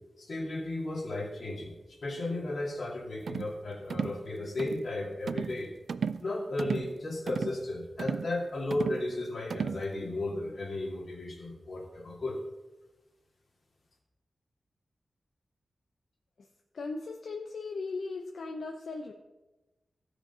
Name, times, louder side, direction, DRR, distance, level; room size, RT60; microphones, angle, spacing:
voice 1, 0.2-1.7 2.0-5.7 6.2-12.4, left 2 dB, 50° left, -2 dB, 2.4 m, -34 dB
sound 1, 3.3-3.5 3.9-4.2 4.6-4.8 5.3-5.6 5.9-6.2 6.6-6.9 7.3-7.6 8.0-8.3 8.7-9.0 9.5-9.8, right 6 dB, 80° right, 0.3 m, -34 dB
voice 2, 16.7-19.1, left 3 dB, 70° left, 2 dB, 0.7 m, -37 dB
15.5 x 5.1 x 5.5 m, 1.1 s
wide cardioid pair, 165°, 0 cm